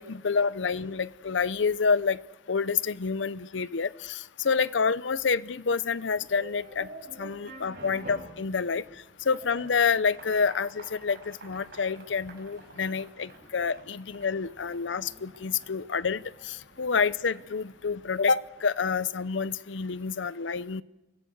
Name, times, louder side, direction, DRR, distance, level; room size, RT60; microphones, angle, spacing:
voice 1, 0.0-2.2 2.5-6.9 7.2-8.8 9.3-20.8, left 5 dB, 85° left, 18 dB, 0.7 m, -28 dB
sound 1, 6.1-18.8, right 2 dB, 55° right, 5.5 m, -49 dB
25.0 x 16.5 x 8.0 m, 1.0 s
head